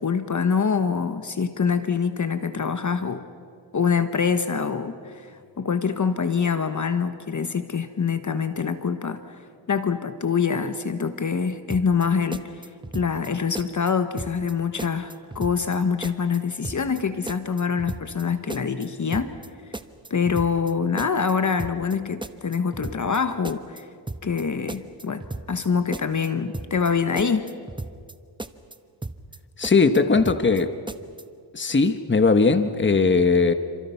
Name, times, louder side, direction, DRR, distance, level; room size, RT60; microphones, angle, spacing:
voice 1, 0.0-3.2 3.7-9.4 9.7-19.3 20.1-23.9 24.2-27.5, left 6 dB, 45° left, 9 dB, 1.2 m, -25 dB
sound 1, 11.7-12.1 12.3-13.3 13.5-13.9 14.2-14.5 14.8-16.4 16.6-17.0 17.3-18.2 18.5-18.9 19.1-19.5 19.7-20.7 21.0-21.3 21.6-21.9 22.2-23.2 23.4-23.8 24.1-24.4 24.7-25.7 25.9-26.3 26.5-26.9 27.2-28.1 28.4-28.8 29.0-29.4 29.6-30.6 30.9-31.2, right 2 dB, 10° right, 0.9 m, -35 dB
voice 2, 29.6-30.7 31.5-33.5, left 4 dB, 25° left, 9 dB, 1.2 m, -19 dB
28.5 x 27.0 x 5.8 m, 2.2 s
cardioid pair, 85°, 43 cm